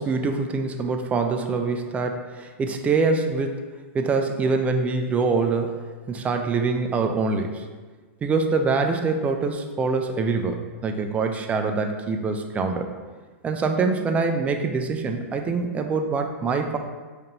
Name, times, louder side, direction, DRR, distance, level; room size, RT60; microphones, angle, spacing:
voice 1, 0.0-3.6 3.9-5.7 6.1-7.7 8.2-12.9 13.4-16.8, right 4 dB, 20° right, 5 dB, 0.3 m, -24 dB
5.2 x 2.6 x 2.8 m, 1.4 s
hypercardioid pair, 125°, 7 cm